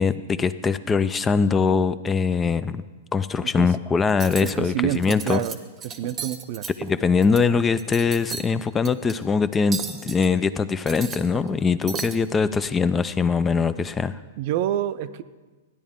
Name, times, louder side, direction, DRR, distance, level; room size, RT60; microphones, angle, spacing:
voice 1, 0.0-2.8 3.1-5.4 6.8-14.2, left 5 dB, 15° left, 14 dB, 0.3 m, -22 dB
Cutlery silverware, 4.1-4.5 4.9-5.5 5.8-7.4 7.8-8.5 8.8-9.1 9.7-10.3 10.7-11.6 11.9-12.2, right 6 dB, 25° right, 0.8 m, -34 dB
voice 2, 4.4-5.6 5.8-6.7 14.4-15.2, right 12 dB, 55° right, 13 dB, 0.5 m, -27 dB
14.0 x 9.9 x 3.6 m, 1.3 s
hypercardioid pair, 130°, 0 cm